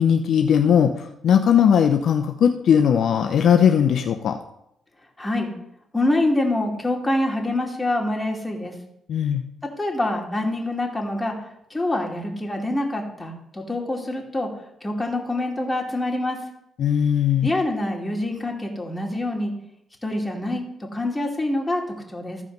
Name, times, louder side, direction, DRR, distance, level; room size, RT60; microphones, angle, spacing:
voice 1, 0.0-4.4 9.1-9.4 16.8-17.5, left 8 dB, 65° left, 5 dB, 0.7 m, -18 dB
voice 2, 5.2-5.5 5.9-8.7 9.6-11.4 11.7-14.5 14.8-16.4 17.4-19.5 20.0-22.4, left 1 dB, 15° left, 0 dB, 2.7 m, -25 dB
14.5 x 4.9 x 5.3 m, 0.77 s
cardioid pair, 90°, 0 cm